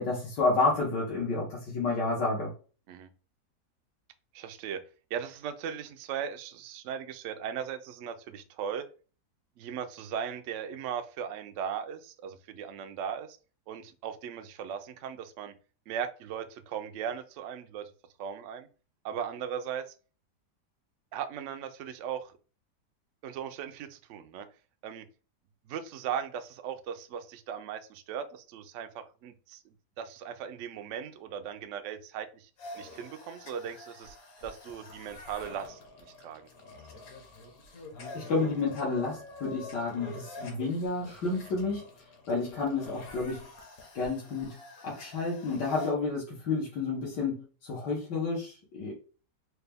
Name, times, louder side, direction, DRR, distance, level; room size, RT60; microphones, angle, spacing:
voice 1, 0.0-2.5 38.1-41.8 42.3-43.4 43.9-44.5 44.8-48.9, left 3 dB, 85° left, -3 dB, 1.7 m, -30 dB
voice 2, 4.3-4.8 5.1-8.9 9.6-13.4 13.7-15.5 15.9-17.9 18.2-18.7 19.0-19.9 21.1-22.3 23.2-24.5 24.8-25.1 25.7-29.6 30.0-32.5 32.8-34.2 34.4-35.8 36.2-36.5, right 8 dB, 80° right, 9 dB, 0.6 m, -38 dB
sound 1, 32.6-45.9, left 3 dB, 60° left, 1.3 m, -46 dB
4.6 x 2.2 x 3.4 m, 0.36 s
omnidirectional pair, 1.8 m